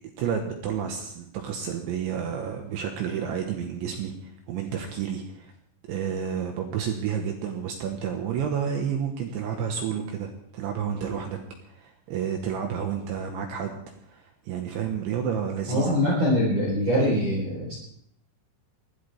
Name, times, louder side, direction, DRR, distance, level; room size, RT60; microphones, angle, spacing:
voice 1, 0.2-5.5 5.8-11.4 11.7-16.0, right 8 dB, 75° right, 3 dB, 3.4 m, -30 dB
voice 2, 15.7-17.7, equal, 35° right, -5 dB, 4.9 m, -23 dB
21.5 x 16.0 x 3.5 m, 0.71 s
omnidirectional pair, 5.8 m